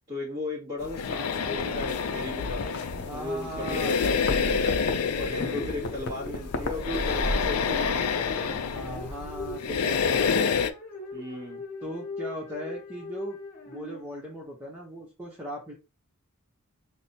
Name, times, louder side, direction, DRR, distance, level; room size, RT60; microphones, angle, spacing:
voice 1, 0.1-2.7 3.1-4.9 5.2-8.6 11.1-11.6, left 2 dB, 25° right, -6 dB, 1.3 m, -35 dB
sound 1, 0.8-10.7, left 6 dB, 90° left, 0.4 m, -28 dB
sound 2, 1.0-9.2, left 1 dB, 55° left, 0.7 m, -36 dB
voice 2, 3.0-4.0 5.4-5.6 8.7-10.6 11.8-13.4 13.7-15.7, right 1 dB, 10° right, -3 dB, 0.8 m, -38 dB
sound 3, 3.1-14.4, left 2 dB, 35° left, 1.1 m, -42 dB
6.0 x 2.0 x 2.7 m, 0.30 s
head